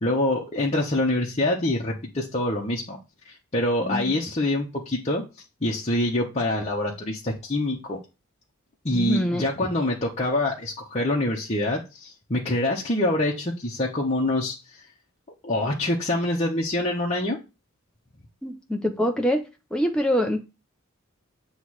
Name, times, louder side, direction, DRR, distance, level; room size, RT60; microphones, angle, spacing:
voice 1, 0.0-3.0 3.2-5.2 5.6-8.0 8.8-14.8 15.4-17.4, left 1 dB, 30° left, 1.1 m, -25 dB
voice 2, 3.8-4.2 8.9-9.4 18.4-19.4 19.7-20.4, equal, 5° left, 0.7 m, -24 dB
7.9 x 3.2 x 6.3 m
head